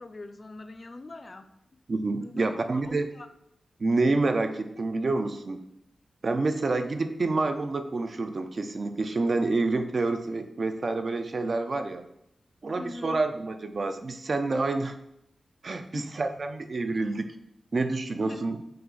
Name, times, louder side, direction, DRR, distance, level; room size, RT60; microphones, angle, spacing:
voice 1, 0.0-1.5 2.2-3.3 12.8-13.2 15.9-16.1 18.2-18.4, left 2 dB, 35° left, 9 dB, 0.3 m, -42 dB
voice 2, 1.9-3.1 3.8-5.7 6.2-12.1 12.6-15.0 15.6-17.3 17.7-18.6, right 3 dB, 50° right, 8 dB, 0.3 m, -28 dB
4.8 x 2.4 x 3.8 m, 0.79 s
wide cardioid pair, 120°, 0 cm